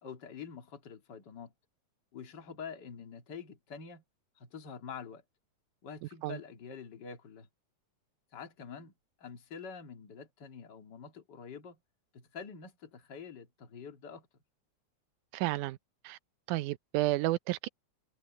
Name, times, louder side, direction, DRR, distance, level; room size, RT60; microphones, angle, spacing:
voice 1, 0.0-1.5 2.1-4.0 4.4-5.2 5.8-7.5 8.3-8.9 9.2-11.8 12.1-14.3, left 6 dB, 35° left, 2.6 m, -46 dB
voice 2, 6.0-6.4 15.3-15.8 16.0-16.2 16.5-17.7, right 17 dB, 90° right, 2.2 m, -31 dB
omnidirectional pair, 3.5 m